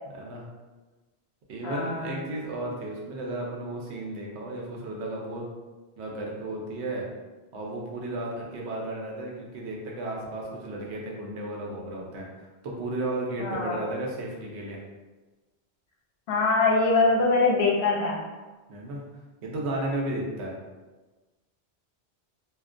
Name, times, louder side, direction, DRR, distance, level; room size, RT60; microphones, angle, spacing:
voice 1, 0.1-0.5 1.5-5.4 6.0-7.1 7.5-12.3 12.6-14.8 18.7-19.0 19.4-20.6, right 2 dB, 85° right, -2 dB, 0.9 m, -33 dB
voice 2, 1.6-2.2 13.4-13.8 16.3-18.2, left 3 dB, 75° left, -2 dB, 0.8 m, -23 dB
2.4 x 2.1 x 2.4 m, 1.2 s
omnidirectional pair, 1.1 m